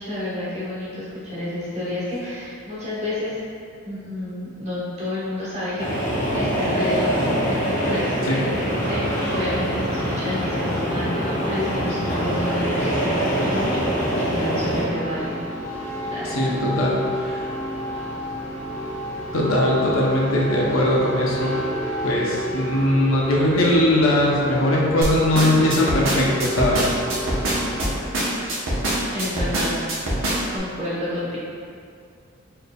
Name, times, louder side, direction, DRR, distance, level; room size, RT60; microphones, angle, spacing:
voice 1, 0.0-3.4 3.8-5.9 6.3-8.4 8.7-15.3 16.0-16.5 29.1-29.7 30.5-31.4, left 1 dB, 35° right, -9 dB, 1.1 m, -30 dB
sound 1, 5.8-14.8, equal, 40° left, 0.7 m, -24 dB
sound 2, 8.6-28.0, equal, 10° left, 1.3 m, -31 dB
voice 2, 16.2-17.4 19.3-21.5 22.0-26.8, left 1 dB, 90° left, -4 dB, 0.7 m, -20 dB
sound 3, 25.0-30.6, right 1 dB, 70° right, 0.9 m, -24 dB
4.4 x 3.2 x 2.3 m, 2.4 s
head